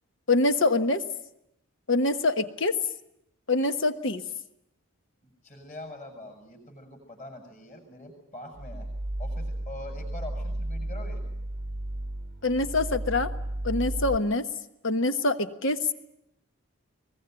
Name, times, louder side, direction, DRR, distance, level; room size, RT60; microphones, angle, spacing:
voice 1, 0.3-1.0 1.9-2.7 3.5-4.2 12.4-13.3 13.6-14.4 14.8-15.8, left 2 dB, 55° left, 9 dB, 1.3 m, -25 dB
voice 2, 5.2-8.9 9.2-11.2, left 1 dB, 35° left, 4 dB, 6.7 m, -44 dB
sound 1, 8.5-14.2, right 1 dB, 40° right, 0.9 m, -33 dB
22.5 x 20.0 x 9.0 m, 0.82 s
head